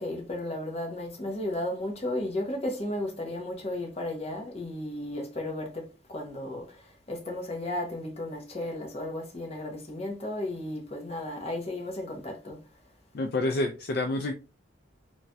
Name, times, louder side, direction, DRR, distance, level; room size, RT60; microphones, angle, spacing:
voice 1, 0.0-5.8 6.1-6.8 7.1-12.6, left 1 dB, 30° left, 0.7 m, -34 dB
voice 2, 13.1-14.3, left 2 dB, 55° left, 0.3 m, -28 dB
3.1 x 2.2 x 2.6 m
head